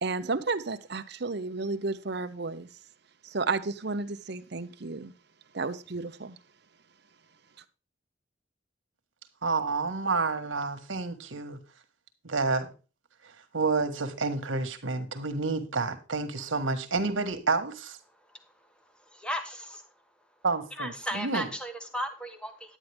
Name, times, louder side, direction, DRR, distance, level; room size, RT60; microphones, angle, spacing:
voice 1, 0.0-2.7 3.2-5.1 5.5-6.4, right 3 dB, 55° right, 0.8 m, -32 dB
voice 2, 9.4-11.6 12.2-12.7 13.2-18.0 20.4-21.5, right 3 dB, 75° right, 1.5 m, -29 dB
voice 3, 19.1-19.9 20.8-22.8, equal, 5° left, 1.2 m, -35 dB
10.5 x 9.2 x 3.4 m
head